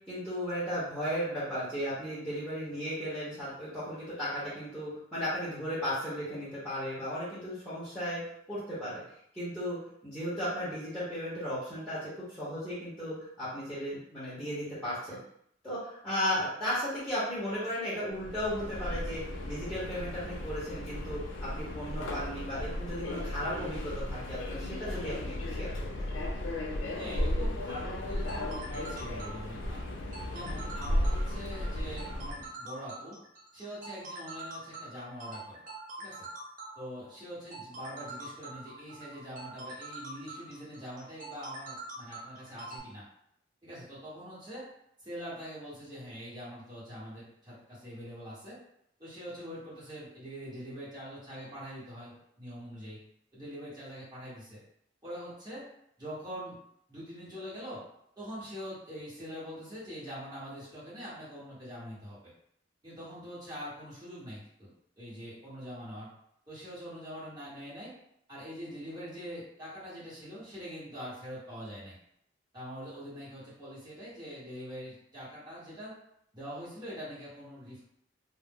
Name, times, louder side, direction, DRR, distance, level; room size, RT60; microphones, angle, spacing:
voice 1, 0.1-8.2 8.5-9.0 9.3-15.2 15.6-25.7 26.0-26.1, equal, ahead, -10 dB, 0.9 m, -35 dB
Subway metro underground, 18.1-32.5, left 1 dB, 85° left, 0.4 m, -35 dB
voice 2, 26.9-29.8 30.3-33.2 33.5-35.6 36.0-36.3 36.7-43.1 43.6-44.7 45.0-48.6 49.0-53.0 53.3-54.6 55.0-55.6 56.0-56.6 56.9-57.8 58.2-62.2 62.8-64.7 65.0-66.1 66.5-67.9 68.3-71.9 72.5-75.9 76.3-77.8, equal, 20° right, -10 dB, 1.3 m, -43 dB
sound 1, 28.0-42.8, right 2 dB, 45° right, 0.7 m, -44 dB
2.5 x 2.0 x 3.5 m, 0.73 s
head